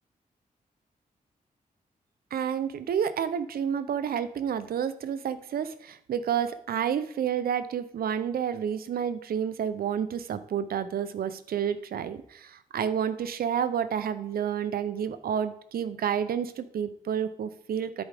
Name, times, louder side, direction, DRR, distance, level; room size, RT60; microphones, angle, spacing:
voice 1, 2.3-18.0, right 8 dB, 90° right, 13 dB, 0.6 m, -30 dB
10.0 x 8.2 x 3.5 m, 0.73 s
wide cardioid pair, 165°, 15 cm